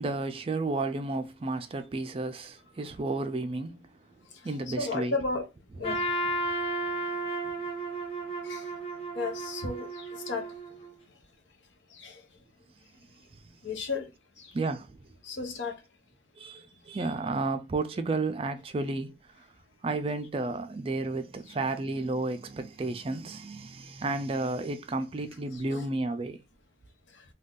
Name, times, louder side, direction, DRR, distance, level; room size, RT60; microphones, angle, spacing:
voice 1, 0.0-3.9 4.4-5.2 5.8-6.0 14.5-15.0 16.4-19.5 19.8-26.4, right 3 dB, 30° right, 0.3 m, -32 dB
voice 2, 4.7-5.5 5.8-6.1 8.4-8.7 9.1-10.5 11.9-12.2 13.6-14.1 14.4-14.5 15.2-15.8 25.7-25.8, left 3 dB, 80° left, 0.7 m, -34 dB
Trumpet, 5.8-10.9, right 1 dB, 30° left, 0.5 m, -33 dB
2.5 x 2.3 x 3.5 m
head